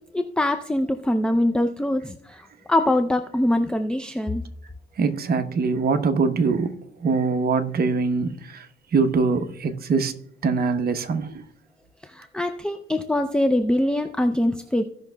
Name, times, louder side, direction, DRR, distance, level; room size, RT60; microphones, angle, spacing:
voice 1, 0.1-4.4 12.0-14.8, left 1 dB, 5° left, 0.5 m, -23 dB
voice 2, 5.0-8.7 8.9-10.1 10.4-11.4, right 4 dB, 50° right, 0.9 m, -23 dB
16.0 x 5.8 x 2.2 m
cardioid pair, 90°, 20 cm